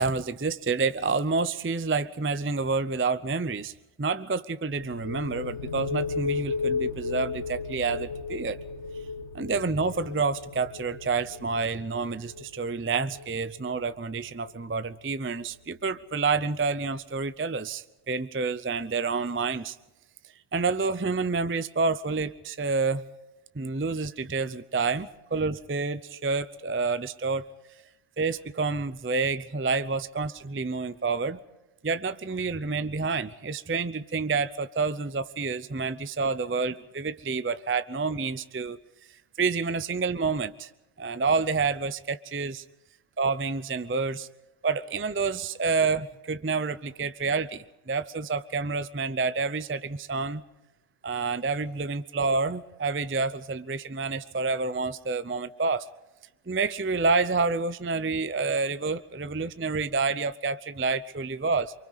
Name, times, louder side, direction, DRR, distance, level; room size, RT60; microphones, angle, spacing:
voice 1, 0.0-3.7 4.0-8.6 9.3-19.8 20.5-23.1 23.5-27.4 28.2-31.4 31.8-38.8 39.4-40.7 41.0-42.6 43.2-44.3 44.6-50.4 51.0-55.9 56.5-61.7, right 4 dB, 15° right, 13 dB, 0.4 m, -28 dB
sound 1, 4.7-16.2, left 4 dB, 80° left, 1.8 m, -36 dB
29.0 x 24.0 x 4.1 m, 1.0 s
omnidirectional pair, 1.2 m